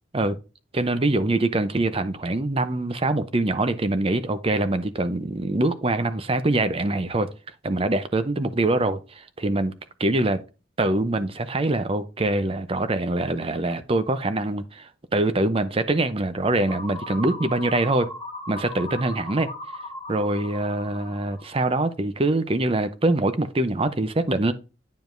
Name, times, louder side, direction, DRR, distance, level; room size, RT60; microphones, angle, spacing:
voice 1, 0.7-7.3 7.6-9.7 10.0-10.4 10.8-18.1 18.5-19.5 20.1-24.5, right 2 dB, 30° right, 0.6 m, -24 dB
sound 1, 16.7-21.7, left 1 dB, 20° left, 2.2 m, -37 dB
9.2 x 5.1 x 2.6 m
head